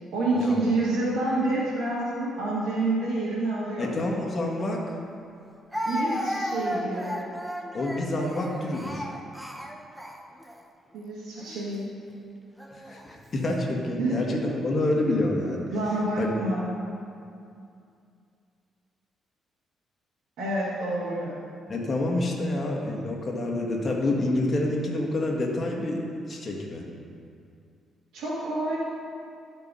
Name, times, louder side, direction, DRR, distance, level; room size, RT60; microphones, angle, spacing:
voice 1, 0.1-4.0 5.9-7.2 10.9-11.9 14.0-14.2 15.7-16.7 20.4-21.3 28.1-28.8, right 2 dB, 80° right, -8 dB, 1.9 m, -28 dB
voice 2, 3.8-4.8 7.7-9.1 12.7-15.7 16.2-16.3 21.7-26.9, left 2 dB, 40° left, -1 dB, 1.6 m, -28 dB
Speech, 4.6-4.7 5.7-10.6 11.4-11.6 12.6-13.2, equal, 5° right, 0.7 m, -34 dB
11.5 x 4.5 x 5.5 m, 2.5 s
cardioid pair, 90°, 0 cm